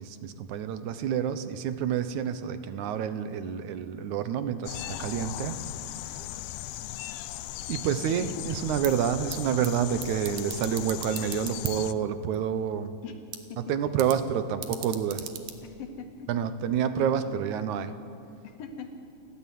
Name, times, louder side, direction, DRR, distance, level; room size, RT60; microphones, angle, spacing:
voice 1, 0.0-5.6 7.7-12.9 13.7-15.3 16.3-17.9, right 8 dB, 70° right, 11 dB, 2.2 m, -28 dB
sound 1, 4.7-11.9, left 14 dB, 90° left, 2.5 m, -38 dB
voice 2, 8.2-8.6 13.0-13.2 13.5-13.6 15.6-16.3 17.0-17.3 18.4-18.9, left 6 dB, 75° left, 4 dB, 3.2 m, -41 dB
sound 2, 8.7-16.5, right 10 dB, 85° right, 3.1 m, -43 dB
29.0 x 13.0 x 9.4 m, 2.5 s
omnidirectional pair, 4.1 m